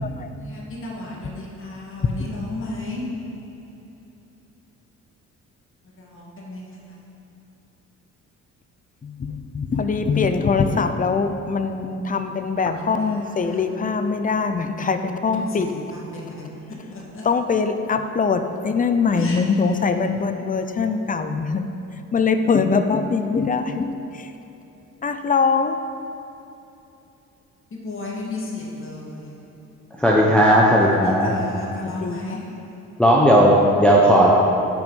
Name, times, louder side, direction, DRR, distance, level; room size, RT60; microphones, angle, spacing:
voice 1, 0.4-3.2 6.1-6.8 13.5-13.6 15.3-15.5 15.9-16.5 16.9-17.2 19.1-19.4 27.7-29.3 31.6-32.4, left 2 dB, 45° left, 2.0 m, -34 dB
voice 2, 9.0-15.7 17.2-21.6 22.1-24.3 25.0-25.8 31.8-32.4, left 5 dB, 25° left, 0.6 m, -22 dB
voice 3, 29.9-31.4 33.0-34.3, equal, 5° left, 0.9 m, -15 dB
9.1 x 5.2 x 5.4 m
cardioid pair, 90°, 30 cm